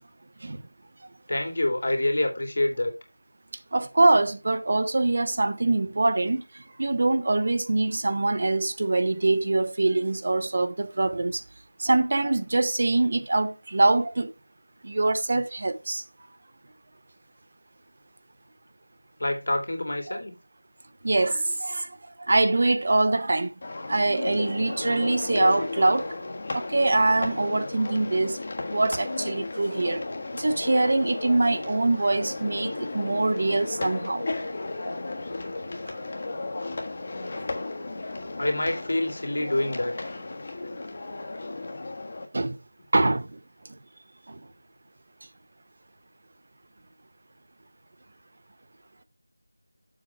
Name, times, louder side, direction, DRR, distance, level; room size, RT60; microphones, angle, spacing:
voice 1, 1.3-2.9 19.2-20.3 38.4-39.9, left 1 dB, 65° left, 2.7 m, -26 dB
voice 2, 3.7-11.4 11.8-14.3 14.8-16.0 20.1-20.2 21.0-23.5 23.9-26.1 26.5-28.4 28.7-30.0 30.3-34.4 34.8-35.0 42.3-42.6 42.9-43.4 44.3-44.4, right 2 dB, 40° right, 0.8 m, -24 dB
sound 1, 23.6-42.3, left 2 dB, 35° left, 1.3 m, -34 dB
7.4 x 5.8 x 4.6 m
figure-of-eight pair, 175°, 0 cm